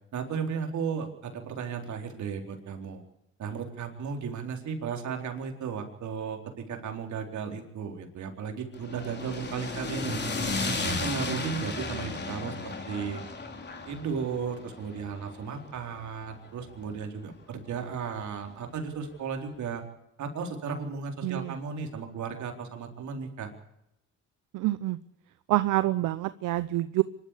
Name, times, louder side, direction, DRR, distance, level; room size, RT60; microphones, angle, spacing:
voice 1, 0.1-3.0 3.4-10.2 10.6-13.2 13.9-19.8 20.2-23.5, right 6 dB, 70° right, 4 dB, 4.1 m, -35 dB
sound 1, 8.7-17.0, left 3 dB, 35° left, 3.7 m, -35 dB
voice 2, 21.2-21.5 24.5-25.0 25.5-27.0, right 16 dB, 90° right, 14 dB, 0.8 m, -27 dB
25.0 x 12.5 x 8.4 m, 0.82 s
cardioid pair, 90°, 30 cm